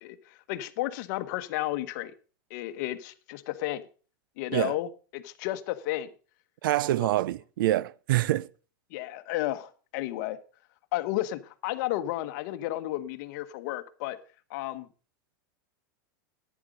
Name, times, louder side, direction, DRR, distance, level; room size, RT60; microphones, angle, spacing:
voice 1, 0.0-2.1 2.5-3.8 4.4-6.1 7.0-7.1 8.9-10.4 10.9-14.2 14.5-14.9, left 15 dB, 55° left, 1.1 m, -32 dB
voice 2, 6.6-8.5, right 15 dB, 80° right, 0.5 m, -26 dB
11.0 x 9.5 x 4.9 m
supercardioid pair, 150°, 11 cm